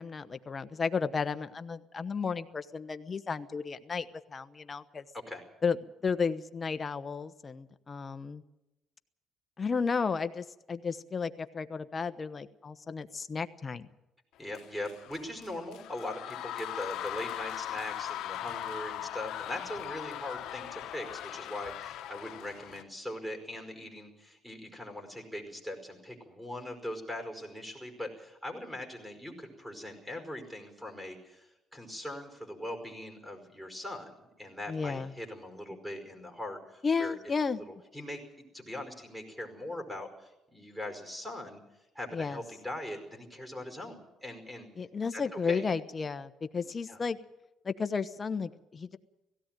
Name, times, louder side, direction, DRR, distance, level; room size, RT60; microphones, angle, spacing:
voice 1, 0.0-5.1 5.6-8.4 9.6-13.9 34.7-35.1 36.8-37.6 42.1-42.4 44.8-47.2 47.6-49.0, left 5 dB, 30° left, 10 dB, 1.1 m, -33 dB
voice 2, 14.4-37.1 37.5-41.6 42.0-44.7 45.1-45.7 46.9-47.0, left 1 dB, 5° right, 5 dB, 5.2 m, -41 dB
sound 1, 14.5-22.8, left 12 dB, 80° left, 1.2 m, -40 dB
17.5 x 16.5 x 9.2 m, 0.94 s
cardioid pair, 105°, 0 cm